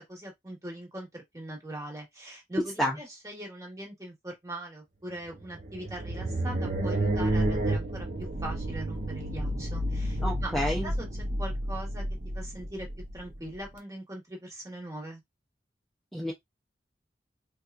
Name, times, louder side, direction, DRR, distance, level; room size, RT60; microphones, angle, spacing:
voice 1, 0.1-10.5 10.8-11.1 11.4-12.0 12.3-12.9 13.1-15.2, right 1 dB, 20° right, 1.4 m, -41 dB
sound 1, 5.3-13.6, right 1 dB, 45° right, 0.7 m, -30 dB
voice 2, 10.2-10.9 16.1-16.3, equal, ahead, 0.6 m, -29 dB
4.2 x 2.3 x 2.5 m
head